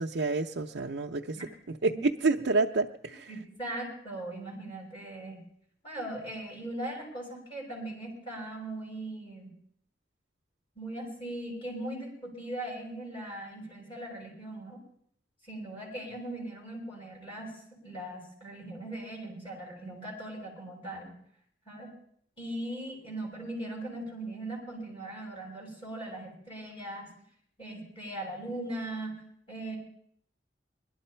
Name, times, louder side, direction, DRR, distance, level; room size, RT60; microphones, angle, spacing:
voice 1, 0.0-1.4 1.8-3.3, right 3 dB, 75° right, 1 dB, 0.6 m, -28 dB
voice 2, 3.3-5.4 5.8-9.5 10.7-14.8 15.4-17.5 17.8-21.1 21.7-21.9 22.4-27.1 27.6-29.1 29.5-29.8, right 1 dB, 30° left, -3 dB, 6.0 m, -39 dB
21.5 x 12.0 x 4.4 m, 0.66 s
head